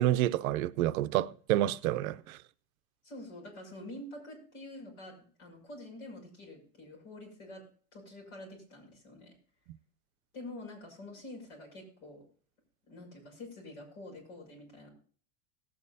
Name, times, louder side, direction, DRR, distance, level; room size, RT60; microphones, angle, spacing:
voice 1, 0.0-2.4, right 14 dB, 70° right, 0.7 m, -28 dB
voice 2, 3.0-7.6 7.9-9.3 10.3-12.2 12.9-14.9, left 1 dB, 55° left, 6.5 m, -47 dB
19.0 x 8.9 x 2.7 m
supercardioid pair, 180°, 43 cm